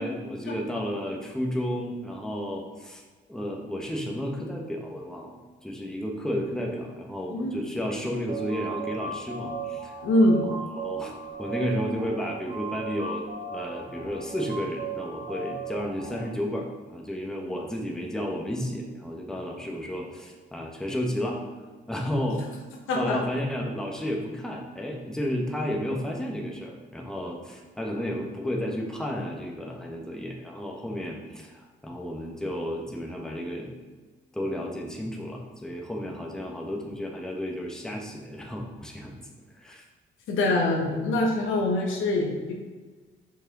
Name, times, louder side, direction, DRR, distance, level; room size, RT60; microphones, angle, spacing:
voice 1, 0.0-3.0 3.3-10.0 10.4-11.1 11.4-21.4 21.9-22.5 22.9-33.7 34.3-39.1 39.5-39.8 41.4-41.5, equal, 5° left, 0 dB, 1.0 m, -32 dB
voice 2, 7.3-7.6 10.0-10.4 22.9-23.2 40.3-42.5, left 1 dB, 80° left, 1 dB, 1.2 m, -24 dB
sound 1, 8.3-16.3, right 5 dB, 35° right, 1.2 m, -36 dB
5.0 x 4.9 x 3.9 m, 1.4 s
cardioid pair, 90°, 20 cm